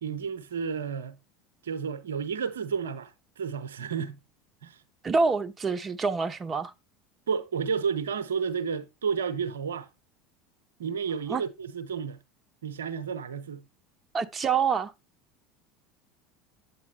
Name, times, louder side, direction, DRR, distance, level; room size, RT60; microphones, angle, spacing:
voice 1, 0.0-1.2 1.6-3.1 3.4-4.2 4.6-4.8 7.3-9.9 10.8-12.2 12.6-13.6, right 6 dB, 75° right, 0.8 m, -31 dB
voice 2, 5.0-6.7 11.3-11.4 14.1-14.9, right 5 dB, 25° right, 1.0 m, -26 dB
8.6 x 8.4 x 3.3 m
figure-of-eight pair, 75°, 0 cm